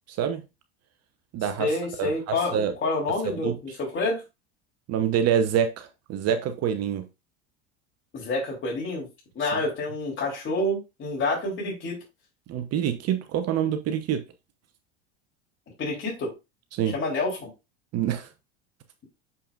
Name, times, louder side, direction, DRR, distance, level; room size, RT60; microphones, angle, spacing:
voice 1, 0.1-0.4 1.3-2.7 3.4-3.8 4.9-7.0 12.5-14.2 16.7-17.0 17.9-18.3, right 9 dB, 45° right, 1.0 m, -26 dB
voice 2, 1.6-4.2 8.1-9.1 9.3-12.0 15.8-16.3 16.9-17.5, left 2 dB, 35° left, 3.4 m, -28 dB
6.8 x 5.7 x 2.5 m
hypercardioid pair, 85°, 35 cm